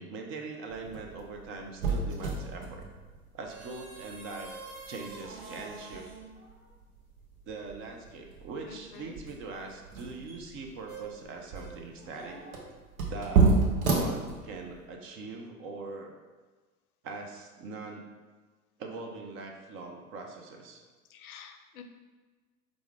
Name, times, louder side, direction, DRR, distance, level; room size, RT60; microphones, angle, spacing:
voice 1, 0.0-2.8 3.3-6.1 7.4-12.4 13.1-13.5 13.9-16.1 17.0-18.0 18.8-20.8, right 3 dB, 30° right, 2 dB, 0.5 m, -42 dB
sound 1, 0.7-14.8, right 4 dB, 65° right, 0.9 m, -32 dB
voice 2, 8.7-9.2 21.1-21.8, left 6 dB, 75° left, 7 dB, 0.5 m, -48 dB
4.7 x 2.5 x 3.2 m, 1.3 s
figure-of-eight pair, 80°, 45 cm